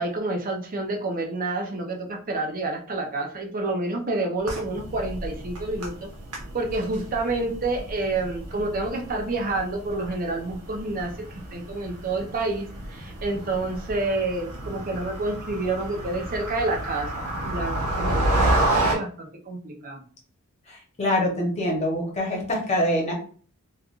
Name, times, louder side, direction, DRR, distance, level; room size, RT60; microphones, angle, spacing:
voice 1, 0.0-6.1 6.5-20.0, right 2 dB, 40° right, 2 dB, 0.6 m, -29 dB
sound 1, 4.4-19.0, right 1 dB, 80° right, 0.9 m, -30 dB
voice 2, 20.7-23.1, left 1 dB, 30° left, -1 dB, 0.9 m, -25 dB
3.3 x 2.3 x 2.4 m, 0.43 s
head